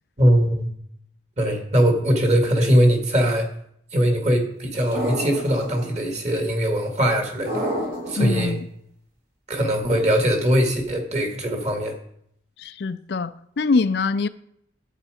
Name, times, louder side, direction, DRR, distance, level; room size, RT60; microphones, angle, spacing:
voice 1, 0.2-0.7 1.4-3.5 3.9-7.7 8.1-8.5 9.5-11.9, equal, 35° right, 2.1 m, -21 dB
sound 1, 4.9-5.8 7.5-8.4, equal, 55° right, 4.0 m, -28 dB
voice 2, 8.2-8.7 12.6-14.3, left 4 dB, 55° left, 0.4 m, -24 dB
11.5 x 8.4 x 5.0 m
head